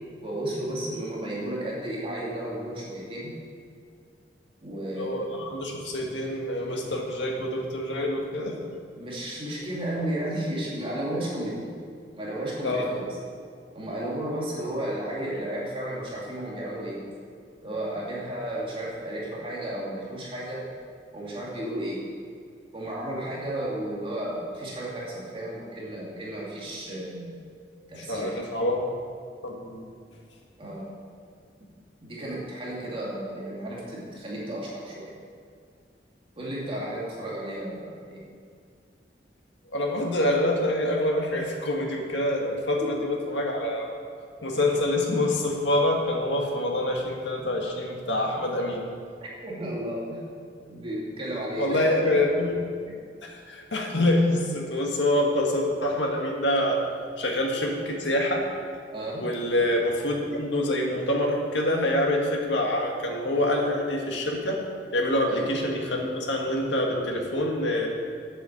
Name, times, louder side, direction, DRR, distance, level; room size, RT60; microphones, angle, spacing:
voice 1, 0.2-3.3 4.6-5.4 9.0-11.7 12.1-13.1 13.7-17.0 17.6-20.7 21.1-22.0 22.7-27.4 27.9-28.4 30.6-30.9 32.0-35.1 36.4-38.2 42.8-43.1 49.2-50.2 50.6-52.2 58.9-59.3 65.3-65.5, right 1 dB, 30° right, -5 dB, 2.4 m, -33 dB
voice 2, 5.0-8.6 12.6-12.9 27.9-28.9 29.4-29.9 39.7-43.9 44.4-48.8 51.6-52.5 53.2-56.8 57.2-58.5 59.2-64.6 64.9-67.9, left 1 dB, 85° left, 0 dB, 1.9 m, -26 dB
9.1 x 7.8 x 7.3 m, 2.2 s
head